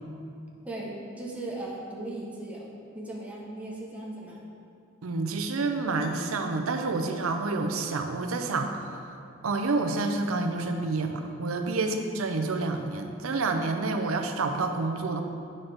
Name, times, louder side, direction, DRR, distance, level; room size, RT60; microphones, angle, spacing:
voice 1, 0.6-4.4 11.7-11.9, right 1 dB, 5° right, -4 dB, 0.9 m, -37 dB
voice 2, 5.0-9.2 9.4-15.2, right 3 dB, 85° right, 6 dB, 0.6 m, -29 dB
8.6 x 5.6 x 3.4 m, 2.6 s
head